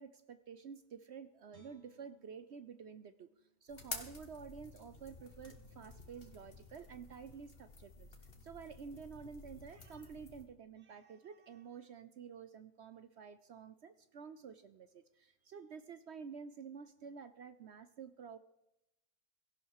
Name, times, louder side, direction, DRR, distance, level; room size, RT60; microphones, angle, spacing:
voice 1, 0.0-3.3 3.6-8.1 8.4-18.4, right 6 dB, 65° right, 12 dB, 0.7 m, -50 dB
Guitar, 1.5-4.7 5.1-5.2, right 1 dB, 50° right, 3.2 m, -69 dB
sound 1, 3.7-10.4, left 3 dB, 35° left, 1.9 m, -51 dB
17.0 x 15.0 x 4.8 m, 0.89 s
omnidirectional pair, 1.8 m